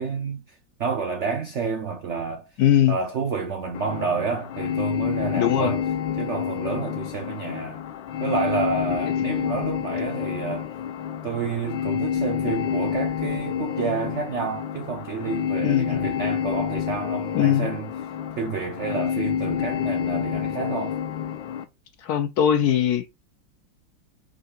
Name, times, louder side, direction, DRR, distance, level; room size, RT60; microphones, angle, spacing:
voice 1, 0.0-2.5 2.9-5.9 6.2-7.8 8.2-10.7 11.2-17.9 18.4-21.0, right 5 dB, 85° right, 0.6 m, -29 dB
voice 2, 2.6-3.0 5.4-5.7 15.6-16.0 17.3-17.7 22.0-23.1, left 10 dB, 65° left, 1.0 m, -20 dB
sound 1, 3.7-21.6, left 9 dB, 85° left, 1.5 m, -28 dB
4.8 x 4.0 x 2.5 m
omnidirectional pair, 2.0 m